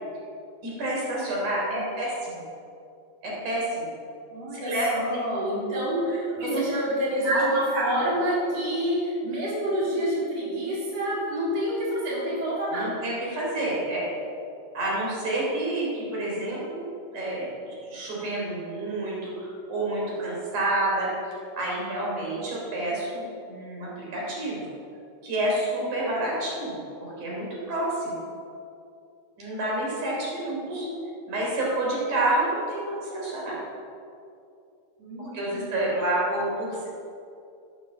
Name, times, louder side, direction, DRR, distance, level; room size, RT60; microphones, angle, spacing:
voice 1, 0.6-2.4 3.2-3.9 4.5-4.9 6.4-6.6 7.2-7.4 7.7-7.9 12.7-14.1 14.7-16.9 17.1-21.1 21.6-24.6 25.2-28.2 29.4-30.9 31.3-33.6 35.2-36.9, right 1 dB, 75° right, -4 dB, 4.9 m, -29 dB
voice 2, 4.3-13.0 26.1-26.3 30.6-31.0 35.0-35.7, equal, 55° right, -6 dB, 4.7 m, -28 dB
16.0 x 9.6 x 7.3 m, 2.5 s
omnidirectional pair, 3.5 m